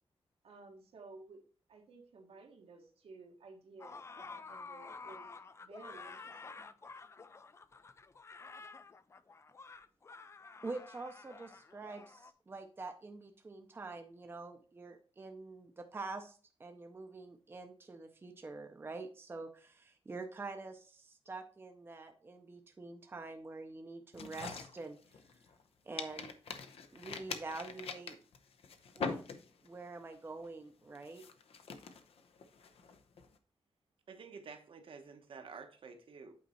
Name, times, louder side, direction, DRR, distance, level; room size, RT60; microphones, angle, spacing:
voice 1, 0.4-1.4 1.7-6.6, right 3 dB, 75° right, 2 dB, 1.4 m, -55 dB
sound 1, 3.8-12.3, left 4 dB, 30° left, 0.3 m, -51 dB
voice 2, 10.6-25.0 25.8-26.3 26.9-28.2 28.9-29.3 29.6-31.2, right 3 dB, 25° right, 5 dB, 0.6 m, -46 dB
sound 2, 24.1-25.6 26.0-29.8 30.1-30.5 31.0-33.3, left 5 dB, 75° left, 0.7 m, -44 dB
voice 3, 34.1-36.3, right 5 dB, 60° right, 6 dB, 1.0 m, -50 dB
8.5 x 4.1 x 4.3 m, 0.40 s
wide cardioid pair, 160°, 10 cm